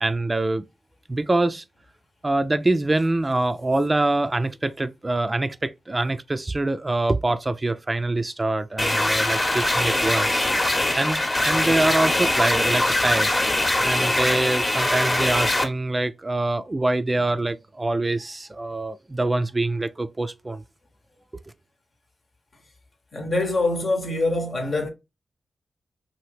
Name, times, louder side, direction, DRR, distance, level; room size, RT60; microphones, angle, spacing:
voice 1, 0.0-0.6 1.1-1.6 2.2-10.4 10.9-13.3 13.8-20.6, right 2 dB, 30° right, 0.3 m, -24 dB
sound 1, 8.8-15.6, left 1 dB, 35° left, 0.9 m, -22 dB
voice 2, 23.1-24.9, left 2 dB, 60° left, 1.0 m, -24 dB
2.8 x 2.5 x 3.1 m
supercardioid pair, 40°, 0 cm